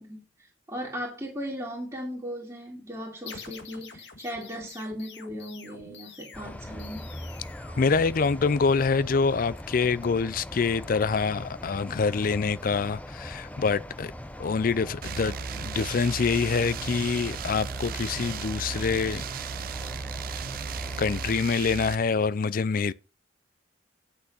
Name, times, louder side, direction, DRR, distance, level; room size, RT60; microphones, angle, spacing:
voice 1, 0.0-7.1, equal, 15° right, 2.3 m, -37 dB
sound 1, 3.3-8.7, left 5 dB, 70° left, 1.7 m, -47 dB
sound 2, 6.3-21.3, left 1 dB, 10° left, 0.7 m, -41 dB
voice 2, 7.8-14.1 14.4-19.2 21.0-22.9, left 5 dB, 50° left, 0.4 m, -26 dB
sound 3, 15.0-22.0, right 6 dB, 50° right, 0.4 m, -35 dB
8.4 x 6.2 x 5.5 m
head